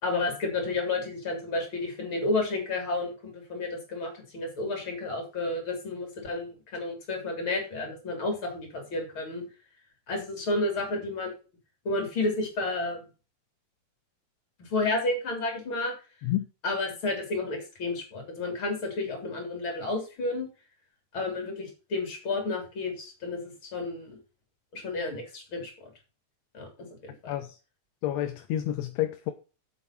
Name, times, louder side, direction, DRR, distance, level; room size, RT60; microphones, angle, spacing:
voice 1, 0.0-9.5 10.1-11.4 11.9-13.0 14.6-15.9 16.6-20.5 21.1-24.2 24.7-25.9 26.5-26.7 27.0-27.3, left 2 dB, 45° left, 4.0 m, -31 dB
voice 2, 27.3-27.6 28.0-29.3, left 12 dB, 75° left, 2.0 m, -29 dB
8.0 x 7.6 x 5.9 m
omnidirectional pair, 3.3 m